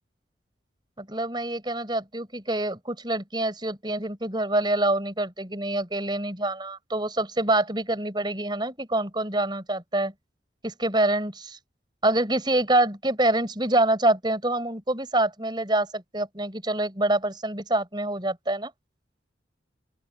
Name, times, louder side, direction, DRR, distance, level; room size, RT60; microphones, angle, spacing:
voice 1, 1.0-10.1 10.6-11.6 12.0-18.7, right 1 dB, 25° right, 5.4 m, -26 dB
open air
head